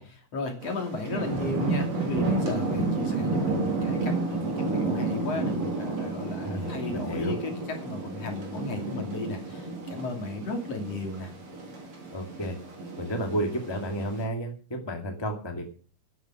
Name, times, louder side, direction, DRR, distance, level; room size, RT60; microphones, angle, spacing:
voice 1, 0.0-11.3, left 3 dB, 50° left, 2 dB, 3.9 m, -34 dB
sound 1, 0.6-14.3, right 3 dB, 55° right, 4.4 m, -31 dB
voice 2, 6.4-7.4 12.1-12.6 13.0-15.7, right 1 dB, 10° left, 3 dB, 1.7 m, -32 dB
13.0 x 10.5 x 6.2 m, 0.40 s
omnidirectional pair, 3.6 m